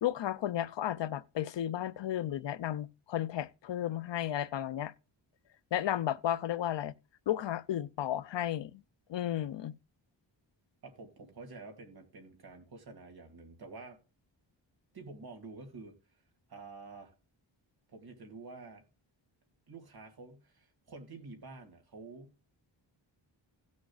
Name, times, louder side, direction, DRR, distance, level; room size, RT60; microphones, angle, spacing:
voice 1, 0.0-4.9 5.7-6.9 7.3-8.8 9.1-9.7, left 11 dB, 65° left, 0.5 m, -33 dB
voice 2, 10.8-14.0 14.9-15.9 16.5-17.1 17.9-18.9 19.7-22.3, right 3 dB, 50° right, 2.2 m, -49 dB
17.0 x 6.4 x 2.4 m
wide cardioid pair, 135°, 47 cm